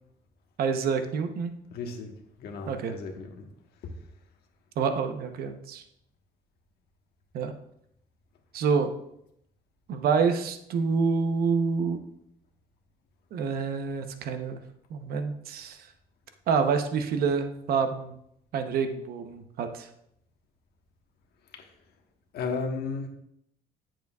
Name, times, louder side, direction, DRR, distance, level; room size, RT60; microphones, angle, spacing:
voice 1, 0.6-1.5 2.7-2.9 4.8-5.8 7.3-7.5 8.5-8.9 9.9-12.0 13.3-14.6 14.9-15.8 16.5-18.2 18.5-19.9, right 5 dB, 65° right, 7 dB, 0.8 m, -27 dB
voice 2, 1.7-2.1 2.4-3.5 3.8-3.9 21.5-21.7 22.3-23.1, left 4 dB, 70° left, 3 dB, 1.3 m, -34 dB
9.3 x 7.5 x 2.4 m, 0.74 s
cardioid pair, 110°, 17 cm